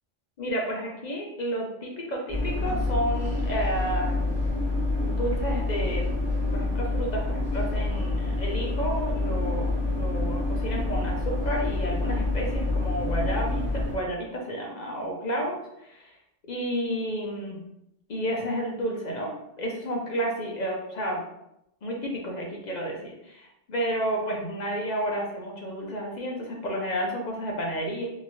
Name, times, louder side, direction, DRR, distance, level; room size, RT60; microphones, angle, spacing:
voice 1, 0.4-4.3 5.0-6.2 6.5-16.1 16.5-17.6 18.1-21.2 21.8-28.0, equal, 50° left, -1 dB, 0.6 m, -31 dB
sound 1, 2.3-13.9, left 2 dB, 25° right, 0.9 m, -27 dB
2.9 x 2.8 x 2.6 m, 0.82 s
omnidirectional pair, 1.1 m